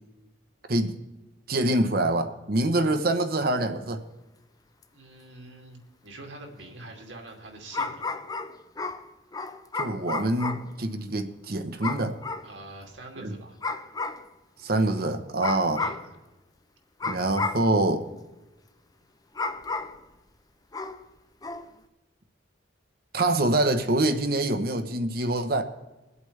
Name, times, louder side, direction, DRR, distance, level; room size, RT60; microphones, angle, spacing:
voice 1, 0.7-1.0 1.5-4.0 9.8-12.2 14.6-15.8 17.0-18.1 23.1-25.6, right 2 dB, 50° right, 7 dB, 0.9 m, -25 dB
sound 1, 4.8-4.9 7.7-10.7 11.8-12.5 13.6-14.3 15.4-16.1 17.0-17.7 19.3-20.0 20.7-21.0 21.4-21.7, left 3 dB, 20° left, 0.5 m, -32 dB
voice 2, 4.9-8.0 12.4-13.6 15.8-16.0, right 2 dB, 80° right, 1 dB, 2.5 m, -45 dB
22.0 x 8.2 x 3.3 m, 1.1 s
head